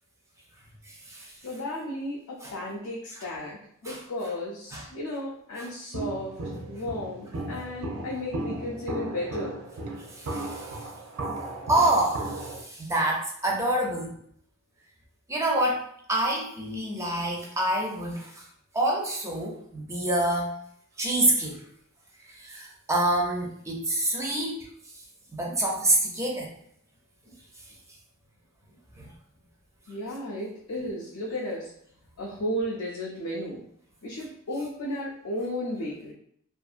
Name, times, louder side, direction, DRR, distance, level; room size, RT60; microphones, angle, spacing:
voice 1, 1.4-6.3 6.7-9.6 29.9-31.7 32.2-33.6 34.0-36.1, left 1 dB, 90° left, -3 dB, 0.5 m, -34 dB
Walk footsteps, 5.9-12.6, right 2 dB, 80° right, 0.5 m, -35 dB
voice 2, 10.2-10.7 11.7-14.1 15.3-15.8 16.1-18.3 18.7-20.5 21.0-21.6 22.4-24.6 25.3-26.5 29.0-29.1, right 1 dB, 15° right, -2 dB, 0.4 m, -26 dB
2.6 x 2.5 x 2.4 m, 0.67 s
head